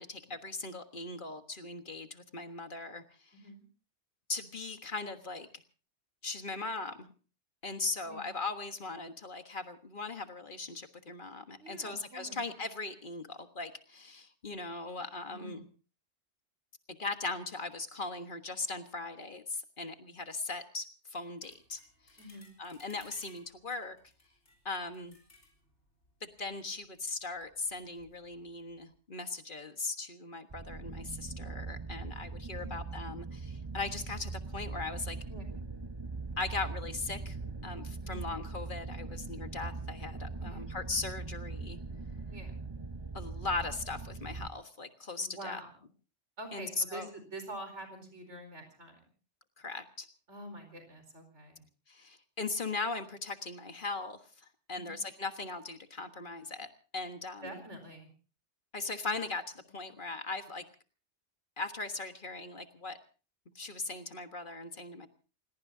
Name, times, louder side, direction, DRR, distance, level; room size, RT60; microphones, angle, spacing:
voice 1, 0.0-3.3 4.3-5.5 6.2-7.1 7.6-15.6 17.0-22.2 22.6-24.0 24.6-25.2 26.2-35.2 36.4-37.4 37.6-41.8 43.1-45.6 46.5-47.1 49.6-50.1 51.9-57.6 58.7-60.6 61.6-63.0 63.5-65.1, left 3 dB, 45° left, 7 dB, 1.6 m, -39 dB
voice 2, 3.3-3.6 8.0-8.3 11.6-12.5 15.3-15.5 22.2-22.5 32.6-32.8 35.3-35.5 38.0-38.3 40.4-40.7 42.3-42.5 45.2-45.7 46.4-49.0 50.3-51.6 54.7-55.1 57.4-58.1 59.7-59.8, right 1 dB, 80° right, 7 dB, 4.7 m, -46 dB
sound 1, 21.4-29.0, left 2 dB, 75° left, 4.1 m, -62 dB
sound 2, 30.5-44.5, right 3 dB, 25° right, 0.8 m, -41 dB
29.0 x 18.0 x 2.7 m, 0.36 s
omnidirectional pair, 1.2 m